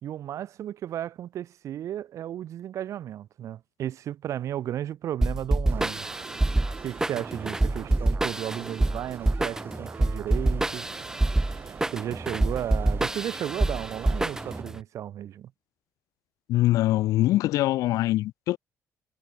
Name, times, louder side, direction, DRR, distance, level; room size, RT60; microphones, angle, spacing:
voice 1, 0.0-6.1 6.8-10.9 11.9-15.5, right 11 dB, 60° right, 1.3 m, -34 dB
sound 1, 5.2-14.8, right 2 dB, 10° right, 1.1 m, -26 dB
sound 2, 5.7-14.6, right 7 dB, 40° right, 3.7 m, -43 dB
voice 2, 16.5-18.6, left 16 dB, 80° left, 0.9 m, -23 dB
cardioid pair, 120°, 6 cm